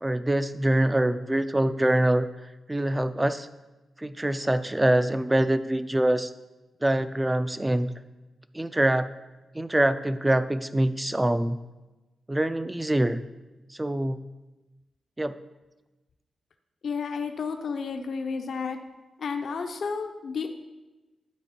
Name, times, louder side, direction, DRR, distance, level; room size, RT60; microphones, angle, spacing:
voice 1, 0.0-2.3 2.7-3.5 4.0-6.3 6.8-7.9 8.5-9.1 9.5-11.6 12.3-13.2 13.7-14.2 15.2-15.4, right 1 dB, 10° right, 12 dB, 0.3 m, -24 dB
voice 2, 16.8-18.8 19.2-20.5, left 5 dB, 60° left, 5 dB, 0.6 m, -31 dB
11.5 x 4.4 x 4.2 m, 1.1 s
wide cardioid pair, 140°, 0 cm